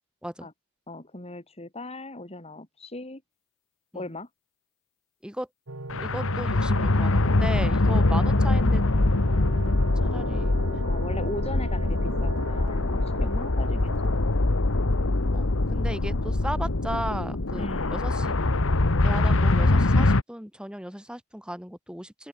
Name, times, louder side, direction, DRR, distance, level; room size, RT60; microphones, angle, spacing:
voice 1, 0.9-3.2 3.9-4.3 10.9-14.7 17.6-18.0, left 2 dB, 25° left, 2.8 m, -38 dB
sound 1, 5.7-14.2, right 2 dB, 65° right, 2.0 m, -40 dB
sound 2, 5.9-20.2, left 2 dB, 60° left, 1.3 m, -23 dB
voice 2, 6.0-8.8 10.0-10.6 15.3-18.4 19.0-22.3, equal, 5° right, 7.2 m, -36 dB
open air
head